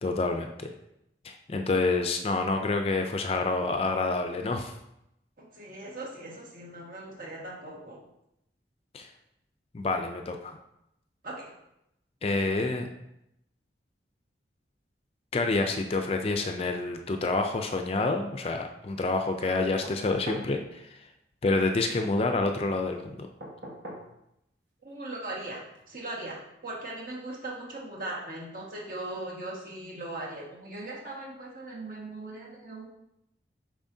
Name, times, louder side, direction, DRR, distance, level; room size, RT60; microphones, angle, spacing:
voice 1, 0.0-0.7 1.2-4.7 8.9-9.1 9.7-10.5 12.2-12.9 15.3-21.0 21.4-23.3, left 3 dB, 30° left, 5 dB, 0.4 m, -28 dB
voice 2, 5.5-8.0 11.2-11.4 24.8-32.9, right 2 dB, 50° right, -4 dB, 1.6 m, -39 dB
sound 1, 19.8-20.5 23.4-24.1 25.7-25.8, equal, 70° right, 1.4 m, -41 dB
7.1 x 5.0 x 2.7 m, 0.83 s
head